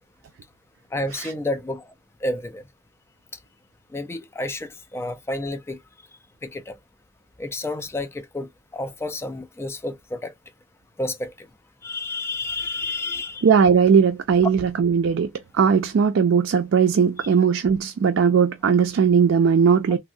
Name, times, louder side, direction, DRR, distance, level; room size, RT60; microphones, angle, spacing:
voice 1, 0.9-1.9 2.2-2.6 3.9-5.8 6.4-6.8 7.4-10.3 11.0-11.5 11.8-13.4 17.2-17.3, left 2 dB, 15° left, 0.4 m, -30 dB
voice 2, 13.4-20.0, right 6 dB, 80° right, 0.4 m, -18 dB
3.4 x 2.0 x 2.6 m
head